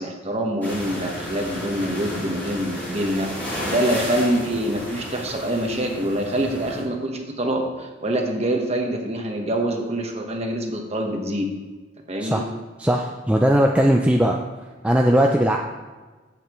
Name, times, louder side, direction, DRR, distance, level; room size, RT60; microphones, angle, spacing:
voice 1, 0.0-11.5 12.1-12.4, right 1 dB, 35° right, 2 dB, 1.2 m, -25 dB
sound 1, 0.6-6.8, equal, 10° left, 2.6 m, -32 dB
voice 2, 12.8-14.4 14.8-15.6, right 1 dB, 5° right, 1 dB, 0.4 m, -18 dB
15.0 x 5.8 x 3.1 m, 1.3 s
head